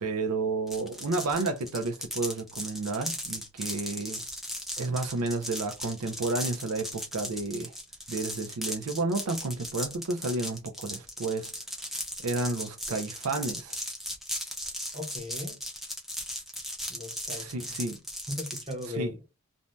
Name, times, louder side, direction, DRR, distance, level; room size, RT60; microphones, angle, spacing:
voice 1, 0.0-4.2 4.8-7.7 8.1-11.5 12.2-13.8 17.3-18.0 18.9-19.2, right 3 dB, 90° right, 0.5 m, -31 dB
sound 1, 0.7-18.9, equal, ahead, 0.4 m, -37 dB
voice 2, 14.9-15.6 16.9-17.7 18.3-19.2, left 1 dB, 25° right, 0.8 m, -38 dB
2.7 x 2.1 x 3.1 m
head